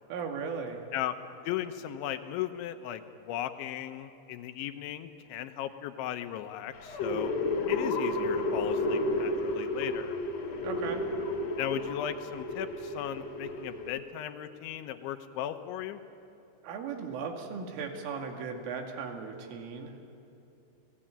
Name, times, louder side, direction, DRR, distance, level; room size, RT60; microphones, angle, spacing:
voice 1, 0.1-0.8 10.6-11.0 16.6-19.9, right 5 dB, 80° right, 3 dB, 4.8 m, -37 dB
voice 2, 1.4-7.3 7.7-10.1 11.6-16.0, left 11 dB, 80° left, 8 dB, 3.3 m, -36 dB
sound 1, 6.7-14.0, left 2 dB, 40° left, 2.9 m, -32 dB
30.0 x 18.5 x 8.9 m, 2.7 s
omnidirectional pair, 5.7 m